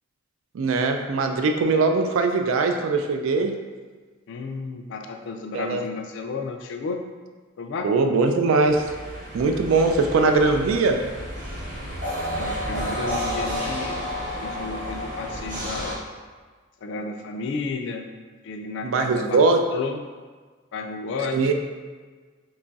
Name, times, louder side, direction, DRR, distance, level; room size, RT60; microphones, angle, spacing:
voice 1, 0.5-3.6 5.5-5.9 7.8-8.8 9.3-11.0 18.8-19.6 21.3-21.5, right 3 dB, 75° right, 5 dB, 0.3 m, -21 dB
voice 2, 4.3-7.0 7.6-7.9 12.4-14.0 14.4-16.0 16.8-18.1 18.4-19.4 19.7-20.0 20.7-21.4, left 4 dB, 60° left, 5 dB, 0.3 m, -32 dB
sound 1, 8.6-15.9, equal, 40° right, 0.8 m, -31 dB
2.9 x 2.3 x 3.9 m, 1.5 s
head